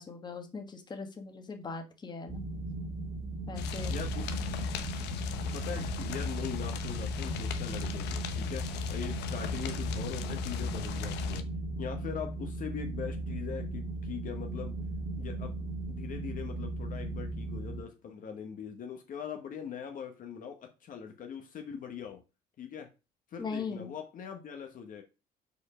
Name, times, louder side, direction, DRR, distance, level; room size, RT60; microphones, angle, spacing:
voice 1, 0.0-2.4 3.5-3.9 23.4-23.9, left 4 dB, 25° left, 1.4 m, -40 dB
sound 1, 2.3-17.8, right 2 dB, 30° right, 1.7 m, -37 dB
sound 2, 3.6-11.4, left 9 dB, 85° left, 0.9 m, -37 dB
voice 2, 3.9-4.4 5.5-11.5 11.8-14.8 15.2-15.6 15.9-22.2 22.6-22.9 23.3-25.0, left 7 dB, 50° left, 1.2 m, -41 dB
5.3 x 4.5 x 5.0 m
cardioid pair, 110°, 17 cm